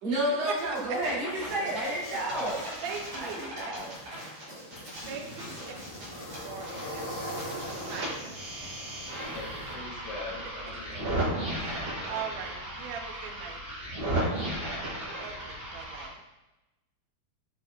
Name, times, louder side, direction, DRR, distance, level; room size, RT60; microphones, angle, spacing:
voice 1, 0.0-2.6 3.1-3.9, right 1 dB, 60° right, -6 dB, 3.5 m, -31 dB
sound 1, 0.6-6.5, left 1 dB, 25° left, 2.1 m, -47 dB
sound 2, 0.8-1.5 1.8-6.8 7.1-16.1, right 1 dB, 40° right, 3.0 m, -36 dB
voice 2, 1.6-2.5 2.8-2.9 4.3-5.7 6.7-7.0 9.1-11.1 14.1-14.9 16.0-16.1, left 2 dB, 80° left, -6 dB, 4.7 m, -43 dB
voice 3, 2.8-3.5 5.1-5.3 6.4-7.0 7.5-8.4 11.6-13.6 15.2-16.2, right 7 dB, 90° right, 0 dB, 1.5 m, -40 dB
sound 3, 4.7-9.7, equal, 40° left, 2.8 m, -41 dB
9.0 x 6.1 x 2.6 m, 1.0 s
omnidirectional pair, 4.5 m